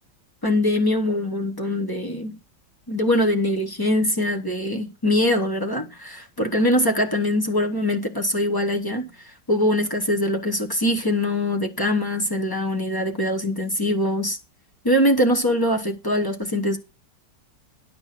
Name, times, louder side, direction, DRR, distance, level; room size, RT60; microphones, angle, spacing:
voice 1, 0.4-2.3 2.9-9.1 9.5-14.4 14.8-16.8, left 1 dB, 20° left, 0.6 m, -22 dB
11.5 x 5.3 x 5.9 m
omnidirectional pair, 2.1 m